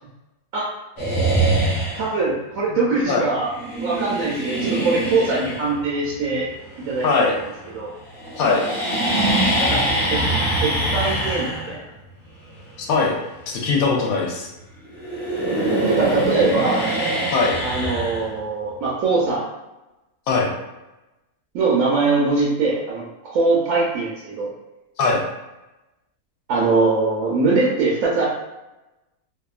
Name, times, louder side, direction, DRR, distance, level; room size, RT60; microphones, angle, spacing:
sound 1, 1.0-2.2 3.5-7.7 8.0-14.6 14.9-18.7, right 1 dB, 30° left, 0.7 m, -24 dB
voice 1, 2.0-3.5 3.8-6.5 6.9-7.3 7.7-7.9 9.6-10.2 10.6-11.8 15.9-16.8 17.6-19.5 21.5-24.5 26.5-28.2, right 3 dB, 70° right, -5 dB, 1.0 m, -22 dB
voice 2, 7.0-7.3 8.4-8.6 12.9-13.2 13.5-14.5 17.3-17.6 20.3-20.5 25.0-25.2, left 4 dB, 75° left, 0 dB, 1.0 m, -20 dB
2.7 x 2.3 x 2.3 m, 0.99 s
omnidirectional pair, 1.6 m